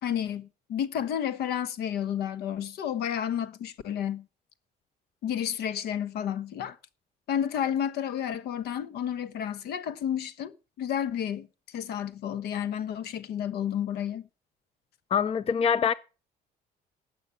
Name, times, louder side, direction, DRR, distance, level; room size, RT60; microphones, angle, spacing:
voice 1, 0.0-4.3 5.2-6.8 7.3-14.3, left 9 dB, 75° left, 1.0 m, -31 dB
voice 2, 15.1-15.9, left 7 dB, 35° left, 0.6 m, -24 dB
12.5 x 8.3 x 5.8 m
cardioid pair, 110°, 17 cm